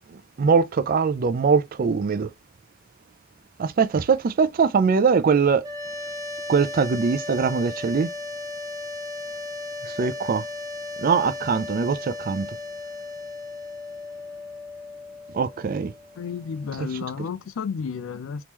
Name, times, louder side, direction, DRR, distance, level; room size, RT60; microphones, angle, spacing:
voice 1, 0.4-2.3 3.6-5.6 6.5-8.1 10.0-10.4 11.0-12.5 15.3-15.9 16.8-16.9, right 5 dB, 45° right, 0.4 m, -22 dB
sound 1, 5.6-16.7, left 2 dB, 20° right, 0.8 m, -36 dB
voice 2, 16.2-18.4, left 6 dB, 75° left, 0.4 m, -32 dB
3.0 x 2.9 x 3.5 m
head